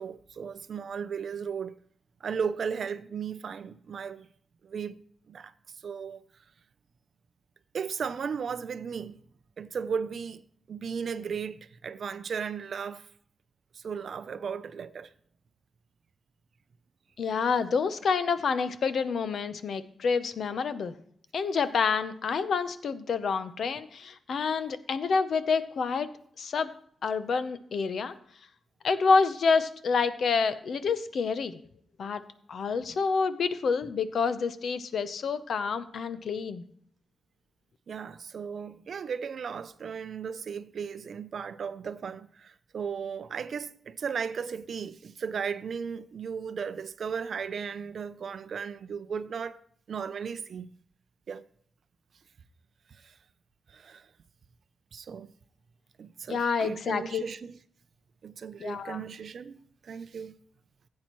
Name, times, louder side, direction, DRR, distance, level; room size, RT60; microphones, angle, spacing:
voice 1, 0.0-1.7 2.2-4.3 4.6-6.2 7.7-9.2 9.6-10.4 10.7-13.1 13.7-15.1 37.9-49.6 49.9-50.7 51.3-51.4 52.9-53.2 53.7-54.1 54.9-55.3 56.0-57.6 58.2-60.3, right 6 dB, 55° right, 0.5 m, -36 dB
voice 2, 17.2-20.9 21.3-26.1 26.4-26.7 27.0-28.2 28.8-31.6 32.0-32.2 32.5-36.6 56.3-57.2 58.6-59.0, left 5 dB, 60° left, 0.7 m, -28 dB
16.0 x 8.4 x 3.0 m
wide cardioid pair, 150°, 0 cm